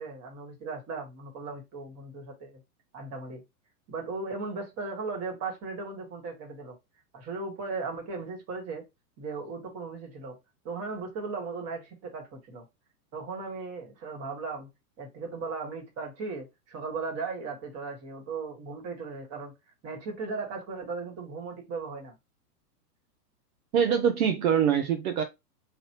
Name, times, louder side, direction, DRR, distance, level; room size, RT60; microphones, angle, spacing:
voice 1, 0.0-2.6 2.9-3.4 3.9-6.8 7.1-8.8 9.2-10.4 10.6-12.6 13.1-14.7 15.0-19.5 19.8-22.1, right 4 dB, 35° right, 1.5 m, -37 dB
voice 2, 23.7-25.2, right 8 dB, 60° right, 0.8 m, -24 dB
3.3 x 2.5 x 2.9 m
hypercardioid pair, 110°, 47 cm